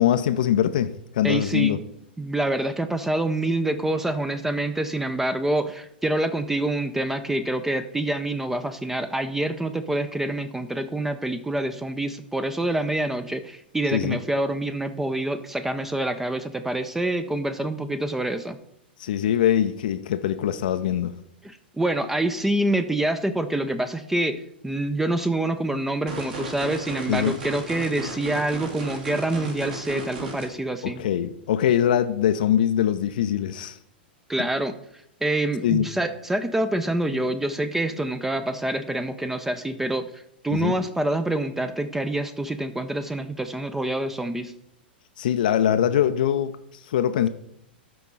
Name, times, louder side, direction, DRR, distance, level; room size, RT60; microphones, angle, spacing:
voice 1, 0.0-1.8 13.9-14.2 19.0-21.1 27.1-27.3 30.8-33.8 35.6-35.9 40.5-40.8 45.2-47.3, left 10 dB, 55° left, 0.4 m, -23 dB
voice 2, 1.2-1.8 2.2-18.6 21.4-31.0 34.3-34.8 35.2-44.5, right 1 dB, 5° right, 0.4 m, -26 dB
sound 1, 26.1-30.5, right 3 dB, 55° right, 1.9 m, -34 dB
12.0 x 4.5 x 4.0 m
figure-of-eight pair, 100°, 6 cm